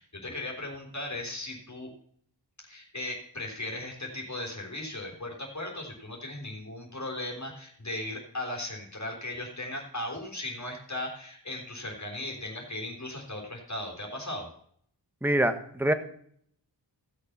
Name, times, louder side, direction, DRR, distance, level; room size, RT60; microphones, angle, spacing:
voice 1, 0.0-1.9 2.7-14.5, left 1 dB, 40° left, -1 dB, 3.4 m, -37 dB
voice 2, 15.2-15.9, right 1 dB, 5° right, 9 dB, 1.2 m, -25 dB
16.0 x 6.7 x 5.8 m, 0.64 s
wide cardioid pair, 60°, 43 cm